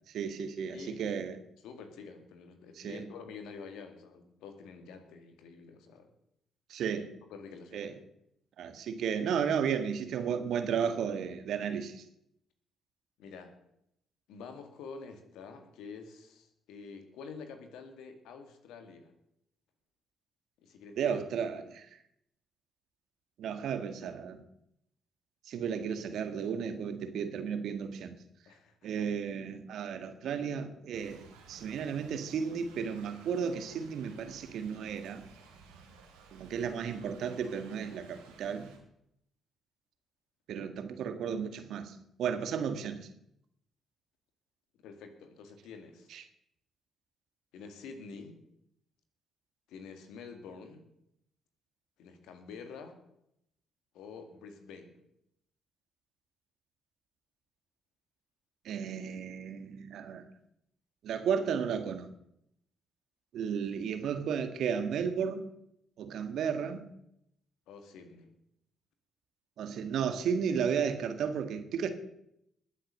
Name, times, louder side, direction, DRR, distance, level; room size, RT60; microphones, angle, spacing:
voice 1, 0.1-1.4 2.8-3.0 6.7-7.1 7.7-7.9 8.6-12.0 21.0-21.9 23.4-24.4 25.5-28.1 28.8-35.2 36.3-38.7 40.5-43.0 46.1-46.2 58.6-60.2 61.0-62.1 63.3-65.5 66.0-66.8 69.6-71.9, right 7 dB, 65° right, 8 dB, 1.7 m, -33 dB
voice 2, 0.7-1.0 1.6-6.1 7.3-7.9 13.2-13.6 14.3-19.1 20.6-21.2 28.5-29.3 44.8-46.1 47.5-48.4 49.7-50.9 52.0-53.0 53.9-55.0 67.7-68.4, left 5 dB, 75° left, 7 dB, 2.2 m, -48 dB
Thunder / Rain, 30.9-38.8, right 5 dB, 85° right, 2.9 m, -56 dB
20.5 x 7.6 x 6.6 m, 0.78 s
hypercardioid pair, 45°, 0 cm